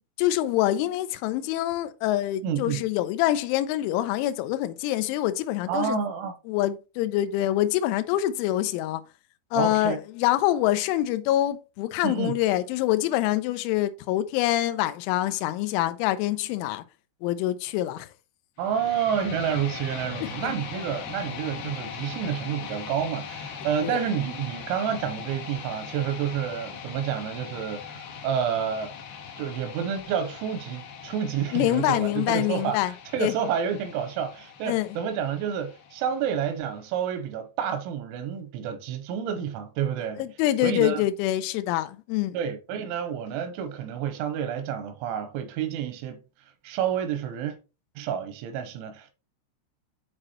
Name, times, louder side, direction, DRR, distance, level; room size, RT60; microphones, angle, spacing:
voice 1, 0.2-6.0 6.5-9.0 9.5-16.8 17.2-18.1 20.4-20.5 23.8-24.0 31.5-32.9 33.2-33.3 34.7-34.9 40.2-42.4, left 14 dB, 85° left, 3.0 m, -25 dB
voice 2, 2.4-2.8 5.7-6.3 9.5-10.0 12.0-12.4 18.6-28.9 29.4-40.3 40.6-41.0 42.3-46.2 46.6-47.6 48.0-49.1, right 8 dB, 85° right, 3.1 m, -29 dB
sound 1, 18.6-36.6, left 6 dB, 65° left, 2.7 m, -40 dB
8.6 x 4.8 x 2.9 m
omnidirectional pair, 5.6 m